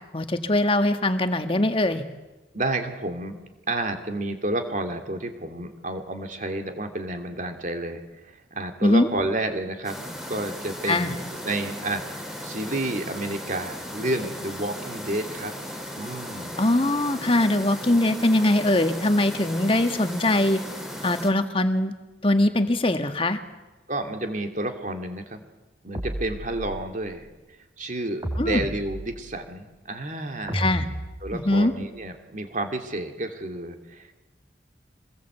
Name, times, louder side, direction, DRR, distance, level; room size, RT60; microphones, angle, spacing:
voice 1, 0.1-2.0 8.8-9.1 10.9-11.1 16.6-20.6 21.0-21.9 22.2-23.4 28.4-28.6 30.5-30.8 31.3-31.7, left 1 dB, 30° left, 8 dB, 1.6 m, -22 dB
voice 2, 2.5-3.4 3.7-15.5 15.9-16.6 23.9-25.4 25.8-27.3 27.8-30.7 31.2-34.2, right 1 dB, 45° right, 5 dB, 2.7 m, -30 dB
sound 1, 9.8-21.3, equal, ahead, 4.3 m, -37 dB
sound 2, 25.9-27.0 28.2-29.5 30.5-31.7, right 1 dB, 25° right, 4.4 m, -33 dB
25.5 x 21.0 x 8.2 m, 1.1 s
head